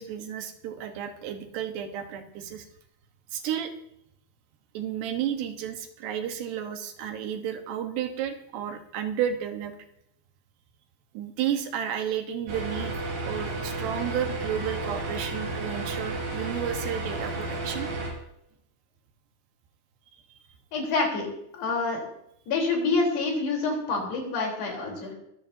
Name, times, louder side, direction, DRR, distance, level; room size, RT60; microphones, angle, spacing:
voice 1, 0.0-2.7 3.3-3.7 4.8-9.7 11.2-17.9, right 9 dB, 85° right, 6 dB, 3.5 m, -32 dB
sound 1, 12.5-18.1, right 2 dB, 60° right, 7.3 m, -32 dB
voice 2, 20.7-21.3 21.5-22.1 22.5-25.1, left 3 dB, 80° left, 0 dB, 6.1 m, -27 dB
22.0 x 13.5 x 2.8 m, 0.77 s
omnidirectional pair, 4.7 m